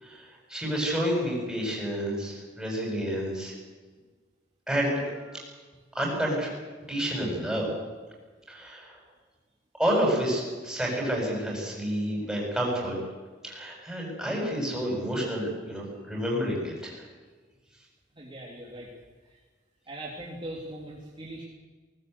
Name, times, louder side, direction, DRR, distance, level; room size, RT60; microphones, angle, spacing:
voice 1, 0.0-3.5 4.7-5.4 5.9-6.5 6.9-7.7 8.5-9.0 9.8-13.0 13.4-17.0, equal, 5° right, -2 dB, 7.8 m, -29 dB
voice 2, 18.2-18.9 19.2-19.4 19.9-21.4, right 1 dB, 25° right, -3 dB, 3.0 m, -40 dB
19.5 x 19.5 x 8.3 m, 1.4 s
head